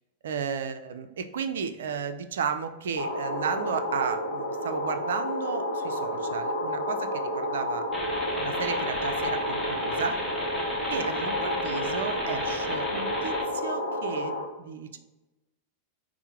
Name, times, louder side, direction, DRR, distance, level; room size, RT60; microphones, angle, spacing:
voice 1, 0.2-7.9 8.4-10.2 10.9-15.0, right 6 dB, 60° right, 9 dB, 0.3 m, -33 dB
sound 1, 3.0-14.4, left 1 dB, 80° left, 0.8 m, -30 dB
sound 2, 7.9-13.4, equal, 10° left, 0.9 m, -35 dB
4.5 x 2.0 x 4.3 m, 1.1 s
figure-of-eight pair, 90°, 0 cm